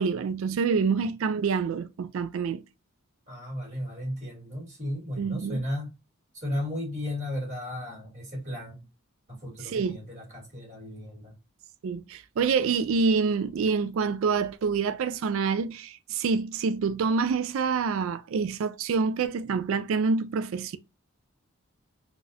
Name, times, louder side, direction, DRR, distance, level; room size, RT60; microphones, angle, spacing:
voice 1, 0.0-2.6 5.2-5.6 9.6-10.0 11.8-20.8, right 5 dB, 65° right, 0.3 m, -27 dB
voice 2, 3.3-5.9 6.3-8.9 9.3-11.3, left 1 dB, 35° right, 2.0 m, -35 dB
3.9 x 2.4 x 2.6 m
head